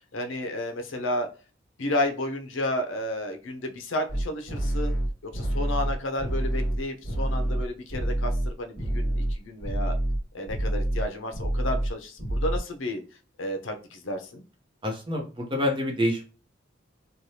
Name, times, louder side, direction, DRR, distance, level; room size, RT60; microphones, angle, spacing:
voice 1, 0.1-1.3 1.8-4.9 5.2-10.0 10.3-13.0 13.4-14.4, left 1 dB, 75° left, 5 dB, 0.6 m, -32 dB
sound 1, 4.1-9.4 9.6-10.2 10.5-11.1 11.3-11.9 12.2-12.6, right 1 dB, 35° left, 1.5 m, -27 dB
voice 2, 14.8-16.2, left 1 dB, 25° right, 1 dB, 0.8 m, -27 dB
3.2 x 2.3 x 2.7 m, 0.35 s
head